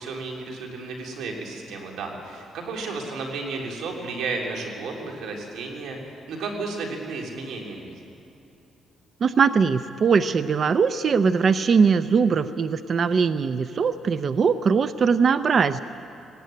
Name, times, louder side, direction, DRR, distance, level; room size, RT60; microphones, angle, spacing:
voice 1, 0.0-7.9, right 3 dB, 85° right, 1 dB, 3.5 m, -33 dB
voice 2, 9.2-15.8, right 5 dB, 50° right, 12 dB, 0.6 m, -21 dB
18.5 x 17.5 x 9.2 m, 2.7 s
cardioid pair, 90°, 0 cm